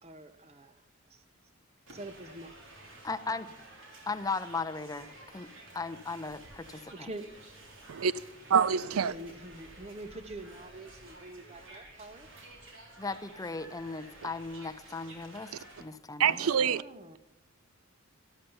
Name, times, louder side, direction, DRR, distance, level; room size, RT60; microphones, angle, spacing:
voice 1, 0.0-0.8 1.1-1.2 1.9-2.5 6.7-7.4 8.9-12.3 16.2-17.2, right 1 dB, 30° right, 0.8 m, -45 dB
sound 1, 1.9-15.8, right 2 dB, 60° right, 3.5 m, -52 dB
voice 2, 3.0-3.5 4.1-5.5 5.7-7.1 13.0-15.5 15.8-16.4, left 4 dB, 15° left, 0.5 m, -37 dB
voice 3, 8.5-9.1 16.2-16.8, right 7 dB, 85° right, 0.5 m, -25 dB
13.5 x 12.5 x 5.6 m
head